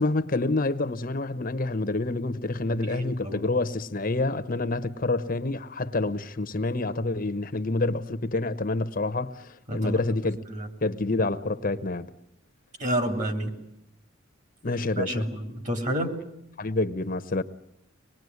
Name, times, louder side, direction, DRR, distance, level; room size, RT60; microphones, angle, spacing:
voice 1, 0.0-10.4 10.8-12.1 14.6-15.3 16.6-17.4, left 2 dB, 40° left, 1.0 m, -27 dB
voice 2, 2.9-3.4 9.7-10.0 10.5-10.7 12.8-13.5 15.0-16.2, right 1 dB, 35° right, 3.2 m, -29 dB
25.0 x 20.0 x 9.5 m
head